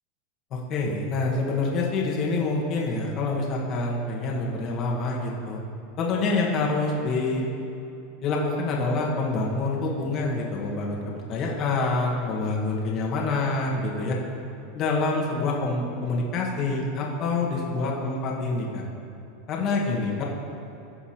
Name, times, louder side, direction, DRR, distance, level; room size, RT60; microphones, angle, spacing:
voice 1, 0.5-5.6 6.0-7.5 8.2-14.2 14.7-18.8 19.5-20.2, left 3 dB, 45° left, -2 dB, 1.5 m, -26 dB
15.0 x 5.8 x 2.9 m, 2.9 s
hypercardioid pair, 100°, 0 cm